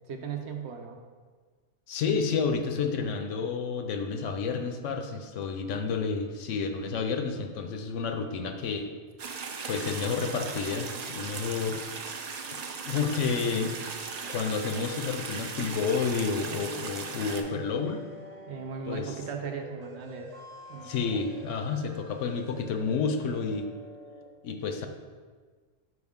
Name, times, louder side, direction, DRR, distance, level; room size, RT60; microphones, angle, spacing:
voice 1, 0.1-1.0 18.5-20.3 20.7-21.2, right 6 dB, 65° right, 4 dB, 0.8 m, -37 dB
voice 2, 1.9-8.9 9.7-11.8 12.9-13.7 14.3-18.0 18.9-19.1 20.8-23.7 24.4-24.9, left 5 dB, 75° left, 6 dB, 0.9 m, -30 dB
sound 1, 9.2-17.4, right 5 dB, 85° right, 0.3 m, -38 dB
sound 2, 13.9-24.3, equal, 35° right, 0.9 m, -48 dB
6.1 x 4.8 x 3.6 m, 1.5 s
omnidirectional pair, 1.3 m